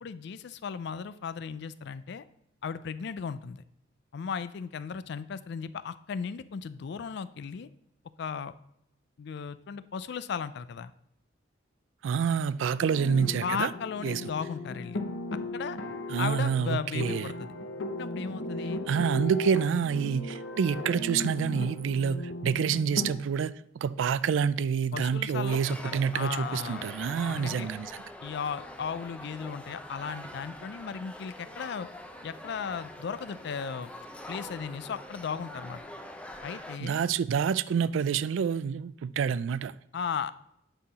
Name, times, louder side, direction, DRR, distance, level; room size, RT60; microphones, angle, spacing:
voice 1, 0.0-2.2 2.6-3.6 4.1-7.7 8.2-8.5 9.2-10.9 13.4-15.0 15.3-15.8 16.2-17.5 17.8-18.8 24.9-26.9 27.3-27.7 28.2-31.9 32.2-33.9 34.3-35.8 36.4-37.0 39.9-40.3, left 6 dB, 60° left, 0.4 m, -36 dB
voice 2, 12.0-13.7 14.0-14.2 16.1-17.3 18.9-23.5 23.8-27.9 36.8-39.7, right 6 dB, 70° right, 0.3 m, -27 dB
sound 1, 12.8-23.1, left 1 dB, 90° left, 0.9 m, -37 dB
sound 2, 25.5-36.8, left 1 dB, 5° left, 0.6 m, -44 dB
8.9 x 5.6 x 4.1 m
head